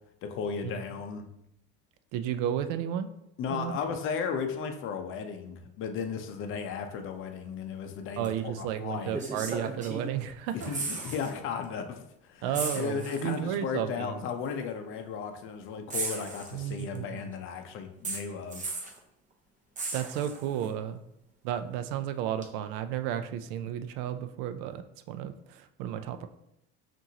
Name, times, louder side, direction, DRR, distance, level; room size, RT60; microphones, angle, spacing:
voice 1, 0.2-1.3 3.4-9.2 10.7-18.7, left 6 dB, 45° left, 5 dB, 0.6 m, -35 dB
voice 2, 2.1-3.1 3.5-3.7 8.2-10.7 12.4-14.2 16.5-17.3 19.9-21.0 21.4-26.3, right 10 dB, 75° right, 10 dB, 0.5 m, -33 dB
sound 1, 8.2-8.4 9.1-10.2 10.5-11.3 11.6-11.8 12.5-13.4 14.4-14.5 15.9-17.0 18.0-19.0 19.8-20.7 22.4-22.5, right 3 dB, 25° right, 0.8 m, -36 dB
5.6 x 2.6 x 2.8 m, 0.81 s
supercardioid pair, 105°, 29 cm